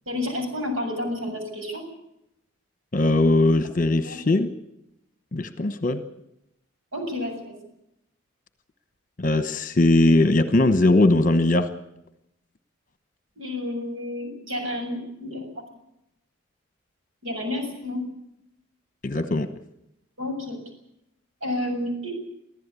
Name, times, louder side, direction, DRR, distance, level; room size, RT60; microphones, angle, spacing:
voice 1, 0.1-1.8 4.0-4.2 6.9-7.6 13.4-15.6 17.2-18.0 20.2-20.6 21.4-22.2, left 1 dB, 70° right, 4 dB, 7.5 m, -30 dB
voice 2, 2.9-4.5 5.3-6.0 9.2-11.7 19.0-19.5, left 2 dB, 40° left, 11 dB, 1.1 m, -20 dB
25.0 x 15.0 x 8.4 m, 0.82 s
head